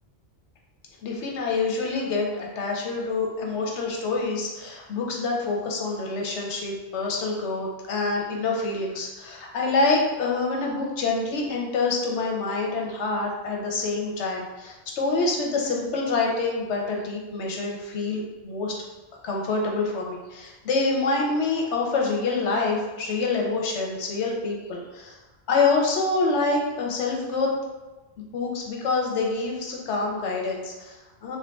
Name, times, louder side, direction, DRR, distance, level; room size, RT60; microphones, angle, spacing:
voice 1, 1.0-18.7 19.2-25.2 25.5-27.5 28.2-31.4, left 3 dB, 80° left, 0 dB, 1.0 m, -26 dB
3.1 x 2.6 x 3.4 m, 1.2 s
omnidirectional pair, 1.2 m